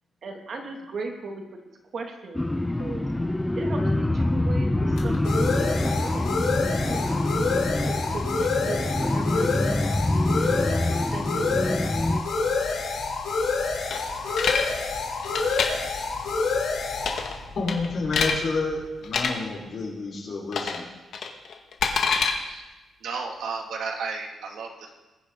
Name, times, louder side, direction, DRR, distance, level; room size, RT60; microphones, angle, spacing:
voice 1, 0.2-3.0 3.5-6.4 6.8-7.3 7.9-9.8 10.6-11.3 11.6-11.9, right 3 dB, 55° right, 1 dB, 2.5 m, -38 dB
sound 1, 2.3-12.2, left 1 dB, 10° left, 0.6 m, -25 dB
sound 2, 3.4-18.7, left 4 dB, 90° left, 3.1 m, -28 dB
sound 3, 13.9-14.6 15.2-15.7 17.0-17.4 17.7-18.4 19.0-19.3 20.5-20.8 21.1-22.3, left 5 dB, 70° left, 1.8 m, -25 dB
voice 2, 17.5-20.8, left 3 dB, 50° left, -2 dB, 5.0 m, -29 dB
voice 3, 23.0-24.9, right 4 dB, 85° right, 1 dB, 2.4 m, -33 dB
21.0 x 9.9 x 3.9 m, 1.1 s
cardioid pair, 115°, 0 cm